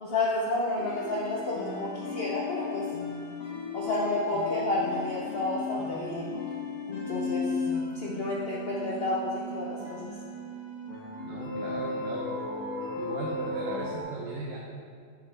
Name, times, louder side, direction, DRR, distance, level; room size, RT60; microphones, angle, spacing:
voice 1, 0.0-2.8 3.7-6.3 6.9-7.6 7.9-10.1, left 2 dB, 50° left, -5 dB, 0.9 m, -30 dB
sound 1, 0.8-14.0, left 3 dB, 75° left, 1.6 m, -35 dB
voice 2, 11.2-12.3 13.0-14.6, right 3 dB, 65° right, -1 dB, 1.0 m, -37 dB
9.3 x 5.2 x 3.3 m, 2.1 s
omnidirectional pair, 1.5 m